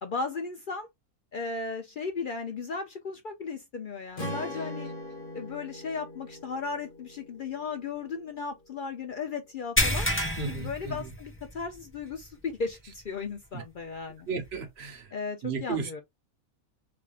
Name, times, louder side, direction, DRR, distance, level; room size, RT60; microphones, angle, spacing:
voice 1, 0.0-0.9 1.3-4.9 5.3-10.1 10.4-14.3 15.1-16.0, left 4 dB, 65° left, 0.5 m, -36 dB
Strum, 4.2-8.4, left 1 dB, 35° left, 1.6 m, -41 dB
sound 1, 9.8-11.6 12.0-12.2 12.7-12.8 14.4-14.5, left 1 dB, 10° left, 0.7 m, -28 dB
voice 2, 10.4-11.1 13.5-13.6 14.3-15.1 15.4-16.0, right 5 dB, 50° right, 1.0 m, -34 dB
3.5 x 3.4 x 2.3 m
omnidirectional pair, 1.5 m